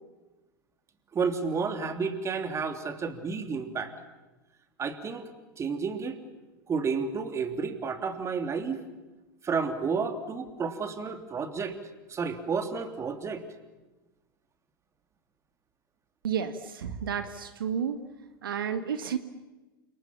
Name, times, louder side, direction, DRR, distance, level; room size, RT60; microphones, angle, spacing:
voice 1, 1.1-3.9 4.8-5.3 5.6-6.2 6.7-8.8 9.4-11.8 12.1-13.4, right 5 dB, 25° right, 8 dB, 3.1 m, -31 dB
voice 2, 16.2-18.0 18.4-19.2, right 7 dB, 75° right, 10 dB, 1.7 m, -31 dB
29.0 x 27.0 x 7.3 m, 1.1 s
hypercardioid pair, 90°, 12 cm